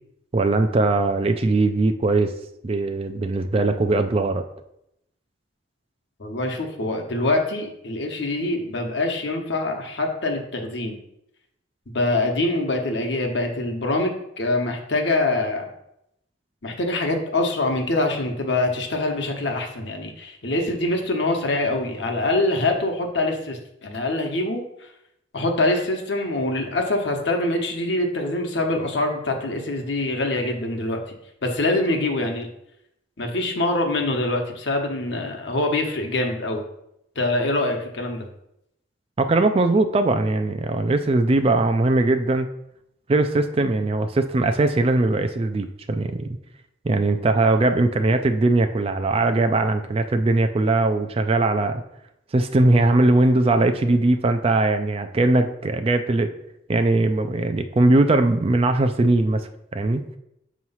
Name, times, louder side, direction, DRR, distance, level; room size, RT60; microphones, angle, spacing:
voice 1, 0.3-2.3 2.6-4.4 39.2-42.5 43.1-46.3 46.8-51.8 52.3-56.3 56.7-60.0, right 2 dB, 30° right, 8 dB, 0.4 m, -20 dB
voice 2, 6.2-11.0 11.9-15.7 16.6-24.6 25.3-31.0 31.4-32.5 33.2-36.6 37.2-38.3, left 2 dB, 65° left, 2 dB, 1.0 m, -24 dB
6.7 x 3.1 x 5.5 m, 0.79 s
head